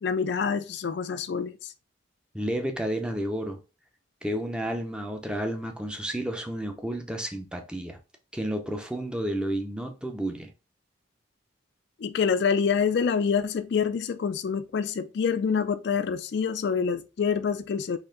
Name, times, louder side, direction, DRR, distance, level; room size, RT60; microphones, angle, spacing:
voice 1, 0.0-1.7 12.0-18.0, left 6 dB, 55° left, 0.3 m, -26 dB
voice 2, 2.3-3.6 4.2-8.0 8.3-10.5, right 1 dB, 5° right, 0.5 m, -31 dB
4.3 x 2.9 x 3.7 m
head